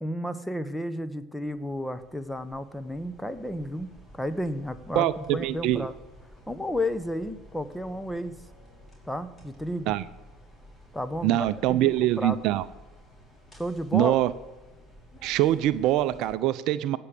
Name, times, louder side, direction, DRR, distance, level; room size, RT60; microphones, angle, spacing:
voice 1, 0.0-5.9 6.5-8.4 9.1-10.0 10.9-12.4 13.5-14.2, left 1 dB, 5° left, 12 dB, 1.0 m, -32 dB
sound 1, 1.4-16.4, equal, 25° left, 5.1 m, -52 dB
voice 2, 4.9-5.9 9.9-10.0 11.2-12.7 13.9-14.3 15.2-17.0, right 13 dB, 60° right, 15 dB, 0.5 m, -24 dB
16.5 x 6.2 x 8.4 m, 1.1 s
hypercardioid pair, 70°, 0 cm